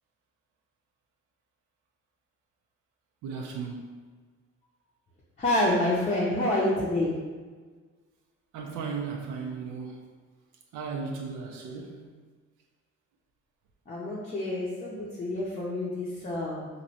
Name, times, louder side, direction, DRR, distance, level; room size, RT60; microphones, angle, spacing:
voice 1, 3.2-3.9 8.5-10.0 10.7-12.1, right 5 dB, 85° right, 1 dB, 0.5 m, -36 dB
voice 2, 5.4-7.1 13.9-16.7, left 1 dB, 25° left, -6 dB, 0.6 m, -28 dB
3.0 x 2.6 x 2.8 m, 1.4 s
cardioid pair, 90°, 30 cm